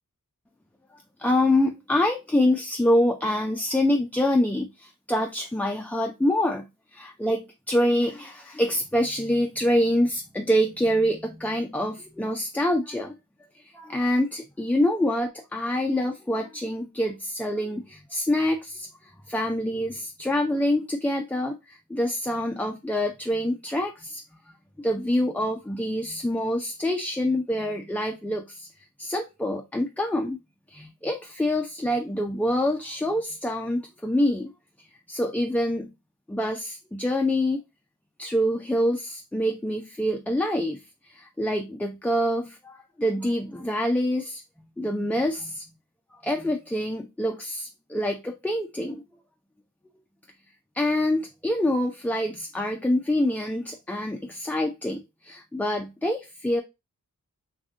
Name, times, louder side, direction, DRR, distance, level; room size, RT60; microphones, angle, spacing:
voice 1, 1.2-6.7 6.9-13.2 13.5-24.2 24.8-28.7 29.0-30.4 30.7-34.5 35.1-35.9 36.3-37.6 38.2-44.4 44.8-45.6 46.2-49.0 50.7-56.6, left 1 dB, 5° left, 0.3 m, -26 dB
2.6 x 2.5 x 3.5 m
wide cardioid pair, 65°, 33 cm